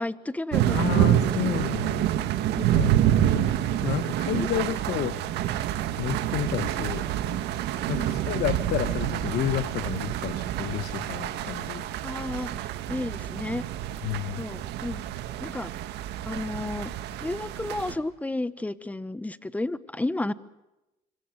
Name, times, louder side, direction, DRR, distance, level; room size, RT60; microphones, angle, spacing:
voice 1, 0.0-1.6 2.5-3.0 4.3-4.5 6.8-6.9 8.0-8.2 12.0-13.6 14.4-15.0 15.4-15.7 16.2-16.9 17.2-20.3, left 2 dB, 10° left, 16 dB, 1.1 m, -32 dB
sound 1, 0.5-17.9, right 12 dB, 85° right, 2.0 m, -27 dB
voice 2, 0.7-2.2 2.7-5.2 6.0-7.0 7.9-11.8 14.0-14.4, left 13 dB, 70° left, 12 dB, 1.2 m, -31 dB
26.0 x 25.5 x 6.7 m, 0.97 s
cardioid pair, 110°, 17 cm